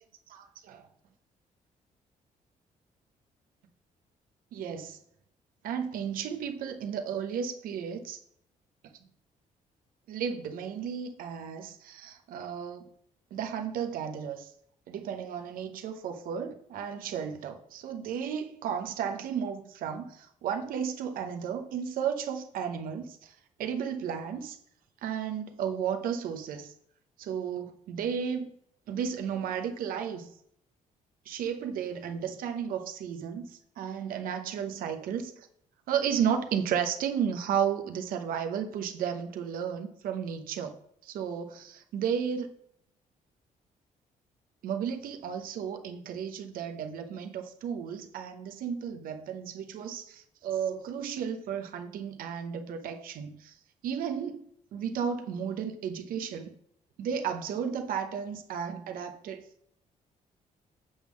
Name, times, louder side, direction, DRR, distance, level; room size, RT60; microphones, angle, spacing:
voice 1, 0.3-0.9 4.5-5.0 5.6-8.2 10.1-12.9 13.3-14.5 14.9-23.3 23.6-24.6 25.0-26.7 27.2-28.5 28.9-30.3 31.3-35.3 35.9-40.7 41.0-42.5 44.6-53.5 53.8-56.5 57.0-59.4, right 8 dB, 85° right, 6 dB, 0.8 m, -33 dB
8.0 x 3.6 x 6.2 m, 0.70 s
cardioid pair, 175°, 14 cm